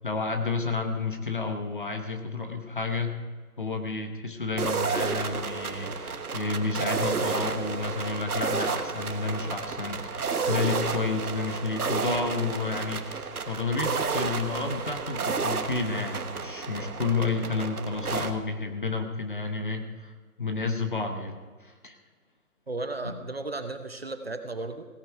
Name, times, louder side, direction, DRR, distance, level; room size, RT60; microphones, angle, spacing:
voice 1, 0.0-3.2 3.6-20.1 20.4-22.0 23.0-23.2, left 3 dB, 35° left, 6 dB, 1.0 m, -31 dB
sound 1, 4.6-18.3, right 5 dB, 70° right, 1.3 m, -31 dB
voice 2, 22.7-24.9, right 2 dB, 40° right, 8 dB, 0.7 m, -34 dB
17.0 x 9.7 x 4.7 m, 1.4 s
hypercardioid pair, 175°, 46 cm